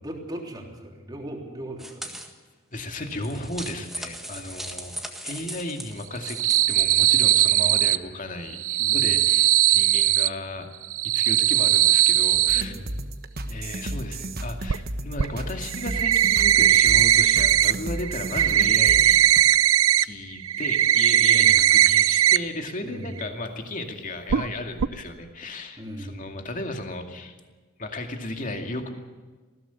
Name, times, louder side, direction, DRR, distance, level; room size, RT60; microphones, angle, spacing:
voice 1, 0.0-2.1 8.8-9.1 12.5-12.9 21.2-21.6 22.8-23.1 25.8-26.2, right 1 dB, 20° right, 1 dB, 3.5 m, -38 dB
sound 1, 1.8-2.3 3.0-6.7, right 1 dB, ahead, 1.8 m, -38 dB
voice 2, 2.7-10.7 11.0-12.7 13.5-19.2 20.0-27.4 27.8-28.9, left 1 dB, 40° left, 4 dB, 2.3 m, -35 dB
sound 2, 6.1-8.0 8.5-10.3 10.8-12.6 14.7-14.8 15.2-15.3 15.7-17.7 18.0-20.0 20.4-22.4 22.7-22.8 23.2-23.3 24.3-24.5 24.8-24.9, right 12 dB, 85° right, 0.6 m, -19 dB
sound 3, 12.5-19.4, right 1 dB, 45° right, 1.4 m, -34 dB
20.0 x 16.0 x 8.4 m, 1.4 s
head